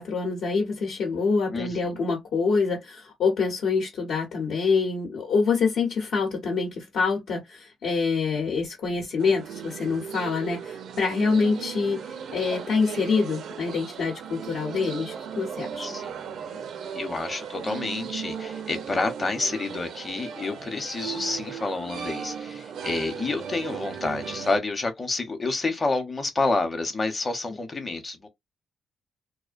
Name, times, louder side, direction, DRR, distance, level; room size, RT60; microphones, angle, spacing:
voice 1, 0.0-15.9, left 4 dB, 70° left, 0.8 m, -26 dB
voice 2, 1.5-2.0 15.8-16.7 17.0-28.3, left 3 dB, 30° left, 0.8 m, -29 dB
sound 1, 9.2-24.6, right 7 dB, 70° right, 0.4 m, -37 dB
2.4 x 2.1 x 2.5 m
cardioid pair, 90°, 0 cm